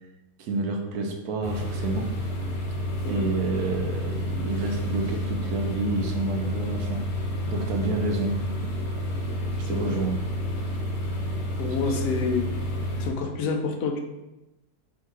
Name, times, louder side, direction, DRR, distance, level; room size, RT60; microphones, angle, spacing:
voice 1, 0.4-2.1 3.1-7.0 7.5-8.4 9.7-10.1, right 3 dB, 75° right, 2 dB, 1.1 m, -29 dB
sound 1, 1.4-13.1, equal, 90° left, 1.5 m, -30 dB
voice 2, 9.6-10.0 11.6-12.4 13.0-14.0, left 4 dB, 65° left, 3 dB, 1.0 m, -28 dB
3.7 x 2.7 x 4.6 m, 0.97 s
omnidirectional pair, 1.7 m